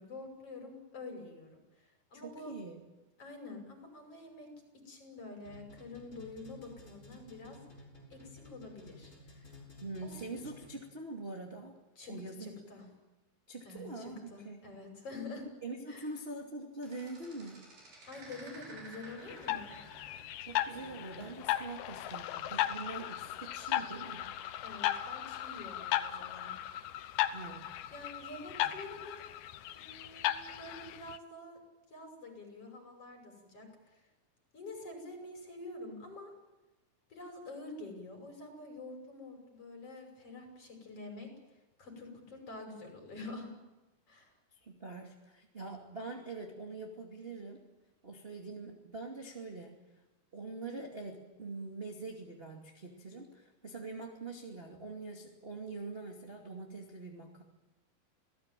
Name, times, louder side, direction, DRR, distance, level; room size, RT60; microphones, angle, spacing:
voice 1, 0.0-2.5 3.2-4.5 4.9-7.6 8.1-9.6 10.0-10.4 12.0-12.9 13.6-15.5 15.9-16.1 18.0-19.8 24.6-26.5 27.9-29.2 29.7-31.6 31.9-34.1 34.5-36.3 37.1-41.3 41.8-43.5 44.1-44.3, left 2 dB, 40° left, 3 dB, 6.9 m, -47 dB
voice 2, 2.2-2.8 9.8-11.7 12.1-12.5 13.5-14.6 15.6-17.6 20.4-24.3 27.3-27.7 28.6-28.7 44.6-47.6 48.0-49.7 50.3-57.4, right 3 dB, 20° right, 0 dB, 2.1 m, -44 dB
sound 1, 5.4-11.0, left 2 dB, 20° left, 6.5 m, -54 dB
sound 2, 16.8-20.3 20.6-21.4 23.1-23.4, right 2 dB, 80° right, 8.4 m, -53 dB
sound 3, 19.3-31.2, left 13 dB, 85° left, 2.9 m, -36 dB
28.0 x 17.5 x 9.1 m, 1.1 s
omnidirectional pair, 4.3 m